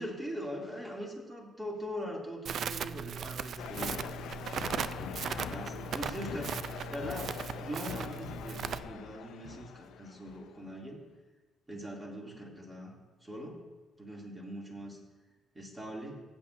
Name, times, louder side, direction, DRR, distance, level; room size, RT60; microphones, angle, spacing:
voice 1, 0.0-4.1 5.0-6.6 6.9-11.0 11.7-12.9 13.2-13.6 14.0-15.0 15.5-16.2, equal, 15° right, -2 dB, 2.3 m, -41 dB
Crackle, 2.5-8.8, right 7 dB, 60° right, 0.3 m, -38 dB
sound 1, 3.6-10.7, left 10 dB, 80° left, 0.3 m, -43 dB
15.0 x 8.5 x 2.5 m, 1.3 s
cardioid pair, 90°, 0 cm